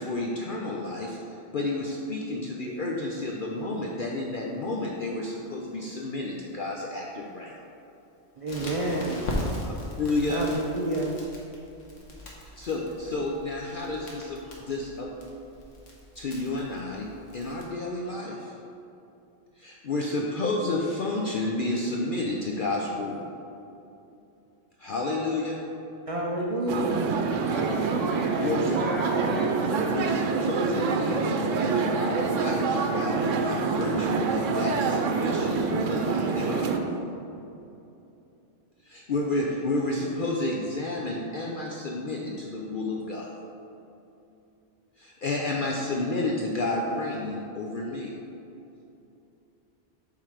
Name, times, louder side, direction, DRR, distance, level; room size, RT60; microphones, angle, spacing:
voice 1, 0.0-7.6 10.0-10.5 12.4-14.4 14.7-15.1 16.2-17.1 17.3-18.5 19.6-23.3 24.8-25.6 28.4-28.8 29.8-36.8 38.8-43.4 45.0-48.1, left 2 dB, 55° left, -1 dB, 0.6 m, -31 dB
voice 2, 8.4-9.2 10.3-11.2 26.1-27.0, right 1 dB, 45° right, -2 dB, 0.5 m, -29 dB
Crackle, 8.5-17.6, left 1 dB, 80° left, 1.5 m, -39 dB
sound 1, 26.7-36.8, right 5 dB, 85° right, 1.0 m, -26 dB
voice 3, 27.5-29.5, equal, ahead, -6 dB, 1.2 m, -35 dB
7.4 x 3.8 x 4.9 m, 2.8 s
omnidirectional pair, 1.3 m